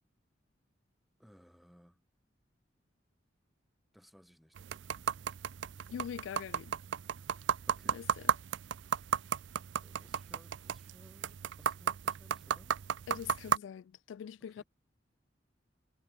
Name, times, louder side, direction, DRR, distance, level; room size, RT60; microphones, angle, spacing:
voice 1, 1.2-2.0 3.9-4.6 7.7-8.0 9.8-12.8 14.6-14.7, equal, ahead, 5.2 m, -61 dB
sound 1, 4.6-13.6, right 8 dB, 75° right, 0.4 m, -35 dB
voice 2, 5.9-6.8 7.9-8.3 13.1-14.6, left 8 dB, 90° left, 0.3 m, -43 dB
head